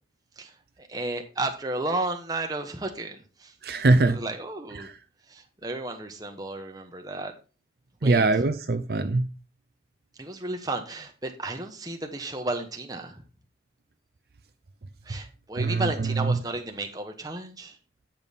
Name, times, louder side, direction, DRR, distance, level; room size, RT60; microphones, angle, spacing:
voice 1, 0.8-3.5 4.1-4.9 5.3-7.3 8.0-8.3 10.2-13.2 15.0-17.8, right 2 dB, 20° right, 1.1 m, -33 dB
voice 2, 3.6-4.2 4.8-4.9 8.0-9.2 15.6-16.3, right 3 dB, 60° right, 0.5 m, -22 dB
8.9 x 5.2 x 4.1 m
head